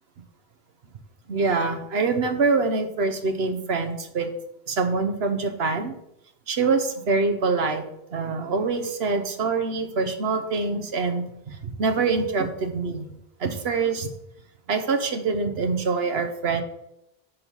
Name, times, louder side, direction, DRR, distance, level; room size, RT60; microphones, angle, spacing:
voice 1, 1.3-4.3 4.7-6.0 6.5-7.8 8.1-13.1 13.4-14.1 14.7-16.6, right 4 dB, 85° right, 6 dB, 1.2 m, -25 dB
11.0 x 3.8 x 5.3 m, 0.82 s
omnidirectional pair, 1.0 m